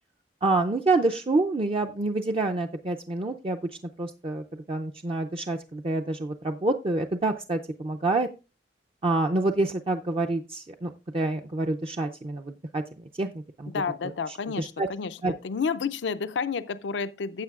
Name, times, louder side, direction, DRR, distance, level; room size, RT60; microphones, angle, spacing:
voice 1, 0.4-3.7 4.0-8.3 9.0-12.8 13.2-13.3 13.6-13.7 14.6-14.9 15.2-15.3, right 2 dB, 30° right, 0.4 m, -27 dB
voice 2, 13.7-17.4, left 5 dB, 80° left, 0.5 m, -30 dB
15.0 x 7.3 x 2.4 m
head